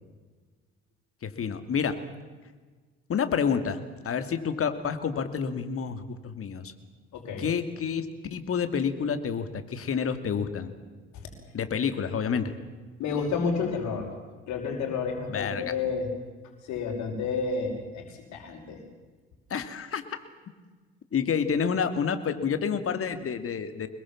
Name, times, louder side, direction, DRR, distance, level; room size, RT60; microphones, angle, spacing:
voice 1, 1.2-2.0 3.1-3.8 4.0-6.7 7.4-8.1 8.3-10.7 11.5-12.5 15.3-15.7 19.5-20.0 21.1-23.9, left 6 dB, 45° left, 10 dB, 2.6 m, -29 dB
voice 2, 7.1-7.5 11.2-11.3 13.0-14.1 14.5-16.1 16.6-18.8, left 5 dB, 65° left, 3 dB, 5.5 m, -30 dB
24.5 x 21.5 x 7.4 m, 1.4 s
hypercardioid pair, 55°, 31 cm